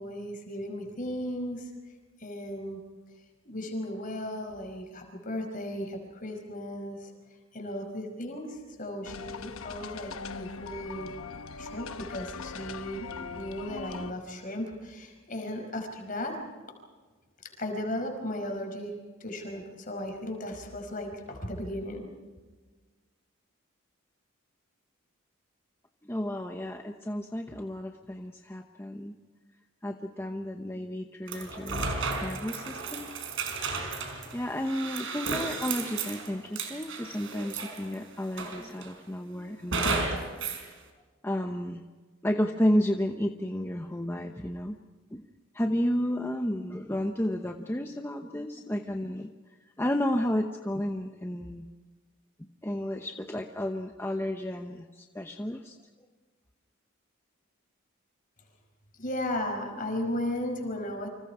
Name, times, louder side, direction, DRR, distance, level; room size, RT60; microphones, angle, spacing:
voice 1, 0.0-1.7 2.2-2.8 3.4-7.1 7.5-11.1 11.6-16.4 17.4-22.1 58.9-61.1, left 1 dB, 40° left, 3 dB, 5.1 m, -36 dB
sound 1, 9.0-14.1, left 5 dB, 80° left, 1.0 m, -41 dB
voice 2, 26.0-29.1 29.8-33.1 34.3-40.7 41.2-41.8 42.2-44.8 45.1-45.2 45.5-49.3 49.8-51.7 52.6-55.8, equal, 10° left, 4 dB, 0.9 m, -32 dB
sound 2, 31.3-37.9 38.4-39.0 39.7-40.7, right 4 dB, 65° right, 4.6 m, -33 dB
29.0 x 26.0 x 4.9 m, 1.4 s
head